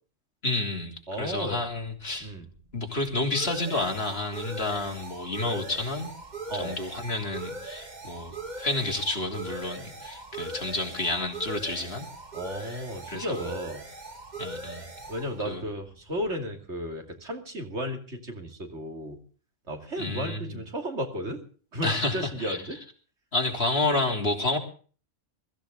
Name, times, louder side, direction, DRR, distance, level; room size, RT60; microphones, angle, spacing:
voice 1, 0.4-2.3 2.7-6.1 6.5-12.1 12.6-13.5 14.4-14.9 15.4-15.6 20.0-20.6 21.8-22.6 23.3-24.6, left 2 dB, 55° left, 2 dB, 3.6 m, -30 dB
voice 2, 1.1-1.6 2.2-2.4 6.5-6.8 12.3-13.8 15.1-19.2 19.7-21.4 21.7-22.8, equal, 65° right, 4 dB, 3.0 m, -34 dB
sound 1, 1.7-16.8, right 2 dB, 35° right, 1.9 m, -41 dB
22.5 x 14.5 x 3.8 m, 0.41 s
omnidirectional pair, 1.3 m